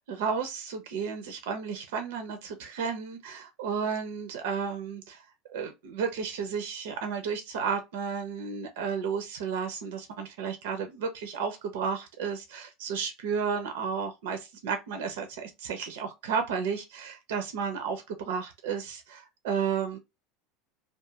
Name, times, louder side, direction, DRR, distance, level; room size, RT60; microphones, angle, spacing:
voice 1, 0.0-20.0, right 6 dB, 70° right, 0.5 m, -33 dB
2.4 x 2.4 x 2.7 m
hypercardioid pair, 85°, 0 cm